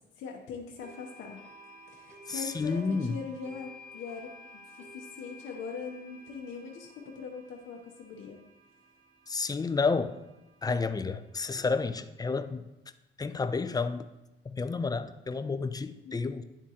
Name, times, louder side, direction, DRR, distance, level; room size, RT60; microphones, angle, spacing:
voice 1, 0.2-1.5 1.9-4.3 4.6-8.4 16.0-16.3, left 5 dB, 85° left, 0 dB, 0.7 m, -41 dB
sound 1, 0.8-12.4, left 1 dB, 35° right, 1.5 m, -53 dB
voice 2, 2.3-3.1 9.3-10.1 10.6-12.6 13.2-14.1 14.5-16.4, left 4 dB, 20° left, 10 dB, 0.4 m, -30 dB
9.8 x 3.6 x 2.8 m, 1.0 s
cardioid pair, 90°, 20 cm